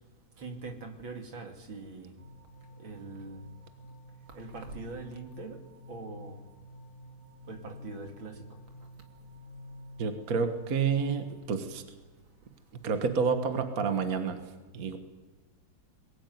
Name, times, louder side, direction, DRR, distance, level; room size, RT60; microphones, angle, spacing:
voice 1, 0.4-2.1 2.8-3.4 4.3-5.6 5.9-6.4 7.5-8.4, right 3 dB, 75° right, 4 dB, 3.3 m, -42 dB
sound 1, 2.2-11.4, left 1 dB, 25° right, 4.5 m, -50 dB
voice 2, 10.0-11.8 12.8-14.4 14.7-15.0, right 5 dB, 45° right, 8 dB, 1.9 m, -29 dB
22.0 x 18.0 x 9.5 m, 1.3 s
omnidirectional pair, 2.2 m